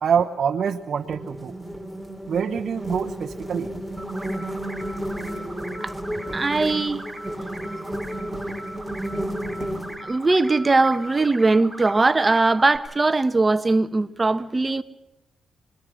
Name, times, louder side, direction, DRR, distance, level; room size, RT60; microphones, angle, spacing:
voice 1, 0.0-1.6 2.3-3.7, right 7 dB, 65° right, 1.0 m, -25 dB
sound 1, 0.8-10.0, right 1 dB, 10° left, 4.5 m, -32 dB
sound 2, 4.0-12.8, right 1 dB, 10° right, 7.0 m, -39 dB
voice 2, 6.3-7.0 10.0-14.8, right 3 dB, 25° right, 1.1 m, -20 dB
26.5 x 21.5 x 6.3 m
cardioid pair, 80°, 0 cm